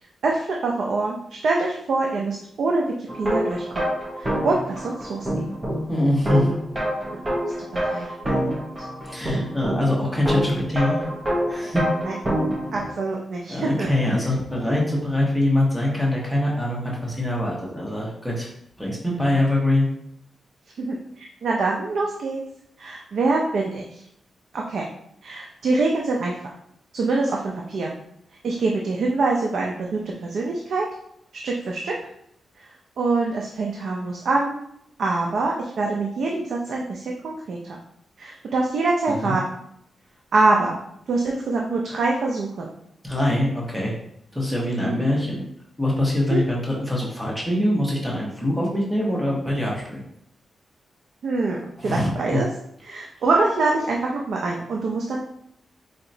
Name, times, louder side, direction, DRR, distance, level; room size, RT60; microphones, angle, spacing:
voice 1, 0.2-3.9 4.2-5.6 7.1-7.2 7.7-8.5 12.0-12.1 12.7-13.9 20.8-22.4 22.8-24.0 24.5-24.9 25.2-26.4 26.9-28.0 28.4-30.9 31.3-31.9 32.6-32.7 33.0-34.6 35.0-37.8 38.2-39.4 40.3-40.8 41.1-42.7 44.8-45.1 46.3-46.4 51.2-52.5 52.8-55.2, right 3 dB, 75° right, -1 dB, 0.5 m, -25 dB
sound 1, 3.1-12.9, equal, 25° right, 0.7 m, -27 dB
voice 2, 5.9-6.5 9.0-11.0 11.5-11.8 13.5-18.5 18.8-19.9 39.1-39.3 43.0-44.0 44.3-45.4 45.8-50.0 51.8-52.4, left 1 dB, ahead, -4 dB, 1.2 m, -23 dB
4.4 x 2.8 x 2.6 m, 0.73 s
cardioid pair, 85°, 0 cm